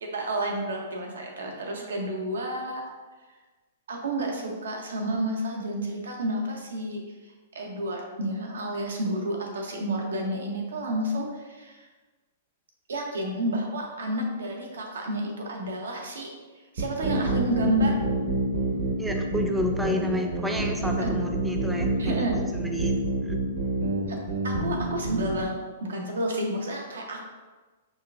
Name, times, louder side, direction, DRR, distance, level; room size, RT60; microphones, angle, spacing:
voice 1, 0.0-2.8 3.9-7.0 7.5-11.8 12.9-16.3 16.7-18.0 21.0-21.1 22.0-22.4 24.1-24.2 24.4-25.6 25.8-27.2, right 1 dB, 90° right, 1 dB, 0.7 m, -30 dB
sound 1, 16.8-25.5, right 2 dB, 75° right, 1.1 m, -28 dB
voice 2, 19.0-23.4, left 1 dB, 5° right, 3 dB, 0.4 m, -31 dB
5.0 x 2.4 x 2.4 m, 1.3 s
hypercardioid pair, 140°, 0 cm